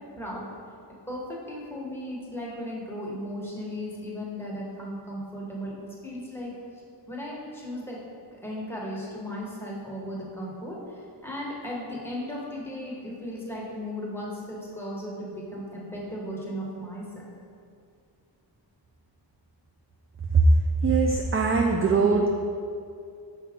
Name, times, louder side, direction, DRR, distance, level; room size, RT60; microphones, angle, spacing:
voice 1, 1.1-6.5 7.1-8.0 8.4-10.8 11.2-17.2, equal, 5° left, -5 dB, 1.2 m, -36 dB
voice 2, 20.8-22.4, right 5 dB, 30° right, 1 dB, 0.4 m, -21 dB
5.5 x 4.8 x 3.6 m, 2.4 s
wide cardioid pair, 65°, 43 cm